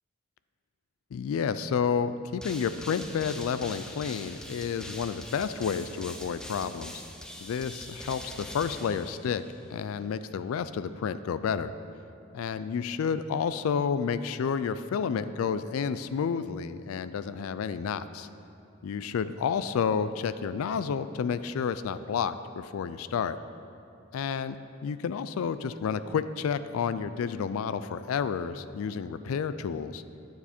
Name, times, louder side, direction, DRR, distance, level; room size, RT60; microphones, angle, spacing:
voice 1, 1.1-7.0 7.4-9.4 9.7-11.7 12.3-18.3 18.8-23.4 24.1-29.9, left 6 dB, 80° left, 13 dB, 0.3 m, -30 dB
sound 1, 2.4-9.7, left 1 dB, 5° left, 0.6 m, -43 dB
9.4 x 7.0 x 4.3 m, 2.9 s
head